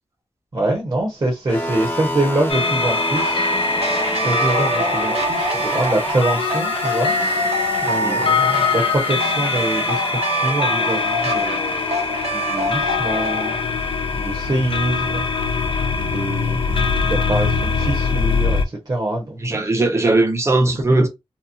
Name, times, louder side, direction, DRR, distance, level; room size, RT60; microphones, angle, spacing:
voice 1, 0.5-3.9 4.2-7.4 7.8-10.0 10.3-11.8 12.3-13.5 14.1-15.2 15.9-19.4 19.8-19.9 21.0-21.1, right 1 dB, 45° right, 1.1 m, -24 dB
sound 1, 1.5-18.4, left 1 dB, 20° left, 0.7 m, -31 dB
sound 2, 2.5-18.7, left 4 dB, 60° left, 0.4 m, -23 dB
sound 3, 2.8-13.6, right 1 dB, 85° right, 0.8 m, -25 dB
voice 2, 19.4-21.1, right 2 dB, 25° right, 0.8 m, -18 dB
3.0 x 2.0 x 2.6 m
wide cardioid pair, 65°, 10 cm